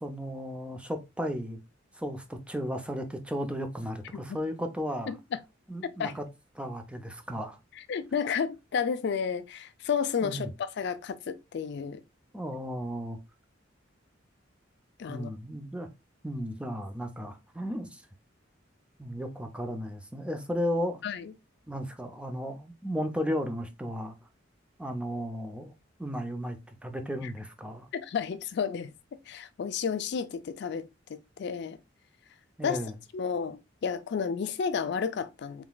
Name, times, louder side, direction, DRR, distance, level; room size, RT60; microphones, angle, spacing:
voice 1, 0.0-1.6 2.0-5.2 5.7-6.2 6.6-7.6 10.2-10.5 12.3-13.2 15.1-15.9 16.2-18.0 19.0-21.0 21.7-24.2 24.8-25.7 26.0-27.9 32.6-32.9, equal, 5° right, 0.5 m, -34 dB
voice 2, 5.8-6.2 7.8-12.0 15.0-15.3 21.0-21.3 27.2-27.3 27.9-28.9 29.3-31.8 32.6-32.8 33.1-35.6, left 6 dB, 60° left, 0.4 m, -32 dB
3.7 x 3.4 x 2.2 m
head